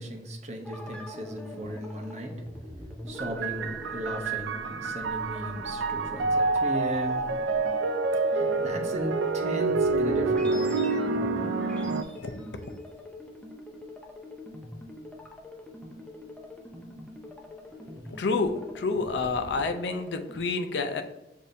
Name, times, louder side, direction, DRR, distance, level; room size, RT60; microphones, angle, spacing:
voice 1, 0.0-2.3 3.1-7.2 8.3-10.9, right 1 dB, 40° right, 2 dB, 0.7 m, -36 dB
sound 1, 0.6-20.5, left 1 dB, 5° left, 0.5 m, -44 dB
sound 2, 3.2-12.0, right 3 dB, 85° right, 0.4 m, -27 dB
voice 2, 11.7-12.3 18.2-21.0, left 4 dB, 70° left, 7 dB, 0.5 m, -29 dB
6.7 x 2.7 x 2.6 m, 0.93 s
head